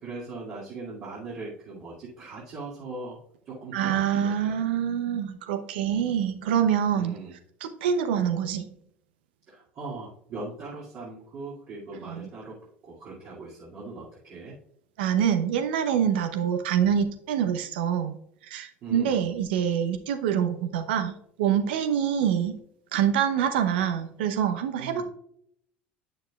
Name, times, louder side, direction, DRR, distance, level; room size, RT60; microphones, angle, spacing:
voice 1, 0.0-3.2 3.5-4.6 6.9-7.4 9.5-14.6 18.8-19.3 24.8-25.0, right 3 dB, 50° right, -7 dB, 2.4 m, -40 dB
voice 2, 3.7-7.2 7.6-8.7 12.0-12.3 15.0-18.2 18.5-22.6 22.9-25.0, right 8 dB, 70° right, 7 dB, 0.8 m, -25 dB
9.3 x 6.5 x 2.4 m, 0.70 s
hypercardioid pair, 70°, 6 cm